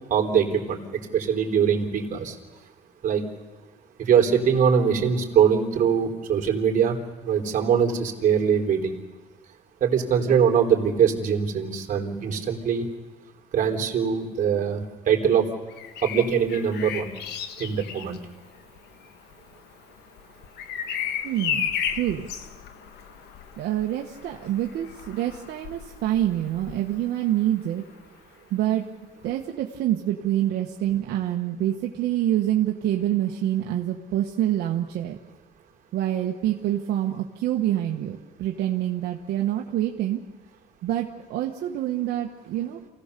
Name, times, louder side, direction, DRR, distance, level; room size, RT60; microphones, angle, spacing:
voice 1, 0.1-0.8 1.1-2.4 3.0-3.2 4.0-6.9 7.2-8.9 9.8-12.8 13.5-15.5 16.0-17.1 17.6-18.2, right 7 dB, 50° right, 1 dB, 3.6 m, -22 dB
Bird vocalization bird call bird song, 15.7-27.5 29.2-29.4, left 8 dB, 75° left, 1.6 m, -35 dB
voice 2, 21.2-22.3 23.6-27.8 28.5-28.9 29.2-35.2 35.9-40.2 40.8-42.9, right 12 dB, 75° right, 1 dB, 1.4 m, -26 dB
28.0 x 17.0 x 6.8 m, 1.2 s
cardioid pair, 110°, 17 cm